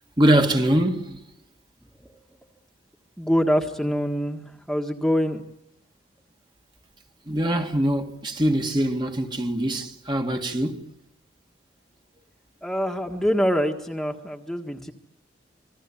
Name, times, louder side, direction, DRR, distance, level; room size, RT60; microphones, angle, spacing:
voice 1, 0.2-1.2 7.3-10.8, right 1 dB, 25° right, 2.0 m, -23 dB
voice 2, 3.2-4.4 4.7-5.4 12.6-14.9, equal, ahead, 1.6 m, -24 dB
28.0 x 22.0 x 8.6 m
head